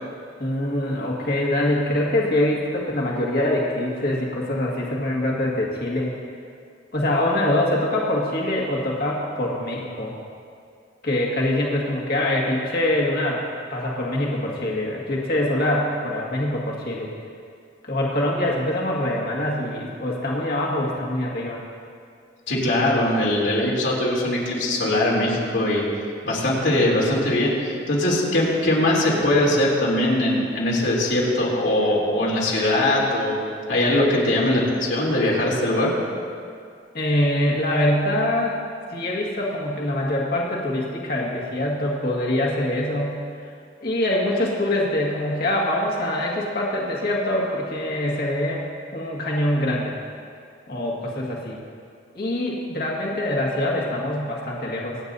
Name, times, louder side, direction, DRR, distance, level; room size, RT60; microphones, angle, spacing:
voice 1, 0.4-6.1 6.9-10.1 11.0-13.4 13.7-17.1 17.8-21.6 36.9-38.6 38.9-43.2 43.8-48.6 48.9-49.9 50.7-51.6 52.1-55.0, left 1 dB, 55° left, -3 dB, 1.9 m, -24 dB
voice 2, 22.5-25.8 26.2-33.4 33.7-35.9, left 1 dB, 80° left, -5 dB, 3.2 m, -21 dB
26.0 x 9.3 x 2.7 m, 2.3 s
head